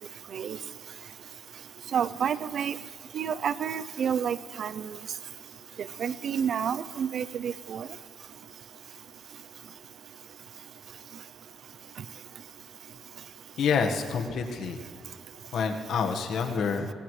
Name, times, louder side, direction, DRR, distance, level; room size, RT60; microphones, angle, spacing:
voice 1, 1.9-2.7 3.1-5.0 6.0-7.9, right 8 dB, 60° right, 16 dB, 0.5 m, -29 dB
voice 2, 13.6-14.8 15.5-16.9, left 5 dB, 70° left, 4 dB, 1.4 m, -27 dB
24.0 x 18.5 x 3.2 m, 2.2 s
cardioid pair, 90°, 0 cm